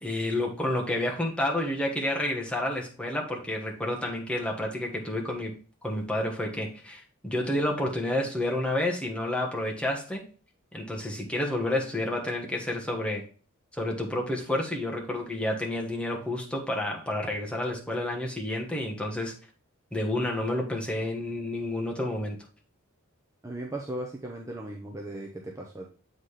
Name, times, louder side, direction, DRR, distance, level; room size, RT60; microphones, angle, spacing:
voice 1, 0.0-10.2 10.7-13.3 13.8-19.3 19.9-22.4, left 1 dB, 5° left, 0 dB, 1.2 m, -30 dB
voice 2, 23.4-25.9, right 1 dB, 15° right, -1 dB, 0.7 m, -37 dB
7.5 x 4.1 x 3.2 m, 0.36 s
head